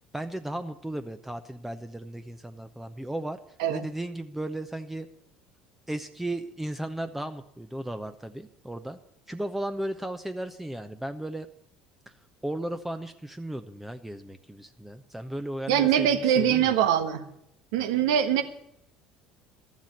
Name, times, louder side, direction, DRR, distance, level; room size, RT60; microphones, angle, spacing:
voice 1, 0.1-3.4 3.7-5.1 5.9-9.0 9.3-11.5 12.4-16.7, right 1 dB, 5° right, 9 dB, 0.8 m, -35 dB
voice 2, 15.7-17.2 17.7-18.4, right 9 dB, 70° right, 9 dB, 1.3 m, -23 dB
13.0 x 7.4 x 9.7 m, 0.77 s
hypercardioid pair, 65°, 3 cm